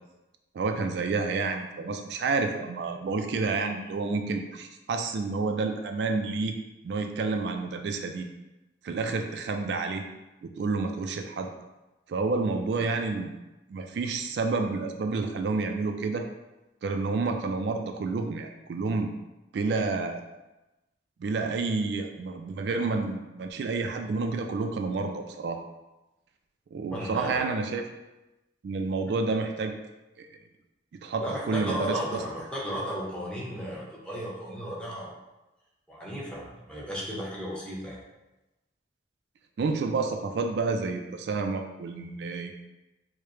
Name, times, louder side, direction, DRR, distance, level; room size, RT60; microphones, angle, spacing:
voice 1, 0.5-6.6 6.8-8.3 8.8-10.0 10.4-11.5 12.1-13.3 13.7-16.3 16.8-19.1 19.5-20.2 21.2-25.6 26.7-27.8 28.6-29.7 30.2-30.3 31.0-32.0 39.6-42.6, right 3 dB, 70° right, 5 dB, 0.3 m, -29 dB
voice 2, 26.9-27.4 31.2-35.2 35.9-38.0, equal, 5° left, -6 dB, 0.8 m, -34 dB
4.7 x 2.1 x 3.1 m, 1.0 s
head